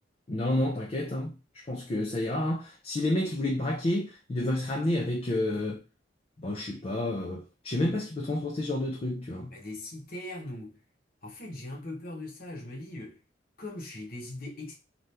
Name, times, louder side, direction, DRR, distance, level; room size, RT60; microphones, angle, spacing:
voice 1, 0.3-5.8 6.4-9.5, left 1 dB, 35° left, 0.5 m, -30 dB
voice 2, 9.5-10.8 11.2-13.2 13.6-14.7, left 1 dB, 55° left, 1.0 m, -40 dB
2.7 x 2.5 x 3.3 m
head